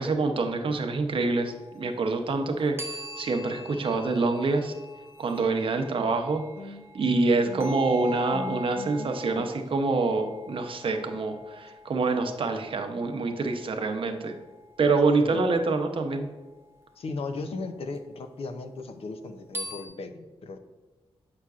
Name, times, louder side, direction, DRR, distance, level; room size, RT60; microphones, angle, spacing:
voice 1, 0.0-4.7 5.2-14.3 14.8-16.3, right 3 dB, 55° right, 4 dB, 0.7 m, -26 dB
sound 1, 1.5-1.9 2.2-14.9 18.0-18.1 19.5-19.9, left 2 dB, 20° right, 0.6 m, -42 dB
voice 2, 6.6-9.5 15.2-15.4 17.0-20.6, left 3 dB, 65° left, 8 dB, 0.6 m, -38 dB
7.7 x 5.8 x 2.4 m, 1.2 s
wide cardioid pair, 170°, 11 cm